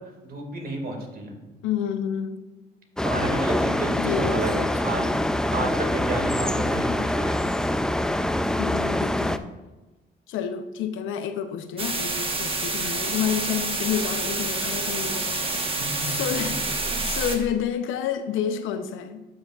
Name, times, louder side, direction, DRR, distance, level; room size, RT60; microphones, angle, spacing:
voice 1, 0.2-1.4 3.0-5.0 5.5-7.5 15.8-16.2 16.9-17.1, right 2 dB, 50° right, 2 dB, 2.1 m, -31 dB
voice 2, 1.6-2.4 4.0-4.6 8.6-9.5 10.3-19.3, left 8 dB, 90° left, 9 dB, 0.7 m, -29 dB
sound 1, 3.0-9.4, left 1 dB, 5° left, 0.3 m, -25 dB
sound 2, 11.8-17.4, right 3 dB, 25° right, 1.2 m, -28 dB
11.5 x 6.3 x 2.4 m, 1.1 s
cardioid pair, 90°, 20 cm